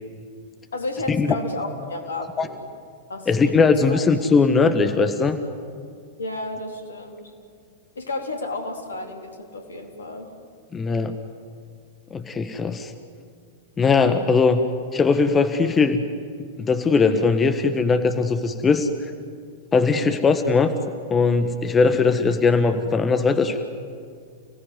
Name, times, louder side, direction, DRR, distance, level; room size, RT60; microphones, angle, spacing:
voice 1, 0.7-2.6 3.1-4.1 6.2-7.3 8.0-10.3 19.9-20.2, left 2 dB, 70° left, 3 dB, 3.8 m, -32 dB
voice 2, 3.3-5.4 10.7-11.2 12.1-12.9 13.8-14.6 14.9-16.0 16.6-18.9 19.7-20.7 21.1-23.6, left 4 dB, 20° left, 8 dB, 1.4 m, -19 dB
29.5 x 18.0 x 9.7 m, 2.2 s
figure-of-eight pair, 95°, 0 cm